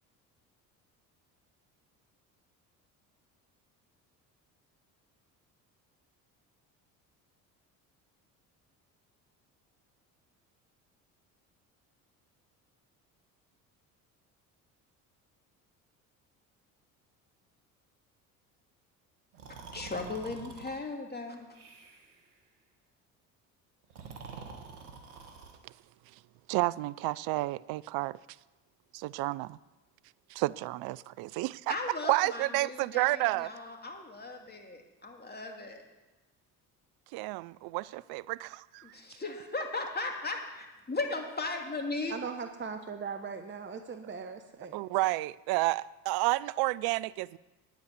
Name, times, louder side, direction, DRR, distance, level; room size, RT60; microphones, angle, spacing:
Breathing, 19.3-20.8 21.5-22.2 23.8-25.6, right 5 dB, 90° right, 1.5 m, -47 dB
voice 1, 19.5-21.6 31.7-35.8 38.8-42.2, left 3 dB, 20° left, 2.5 m, -37 dB
voice 2, 26.5-28.2 28.9-29.6 30.3-31.7 32.0-33.5 37.1-38.9 44.7-47.4, right 19 dB, 60° right, 0.5 m, -31 dB
voice 3, 42.1-44.8, right 5 dB, 25° right, 1.0 m, -39 dB
9.3 x 8.1 x 8.1 m
hypercardioid pair, 65°, 43 cm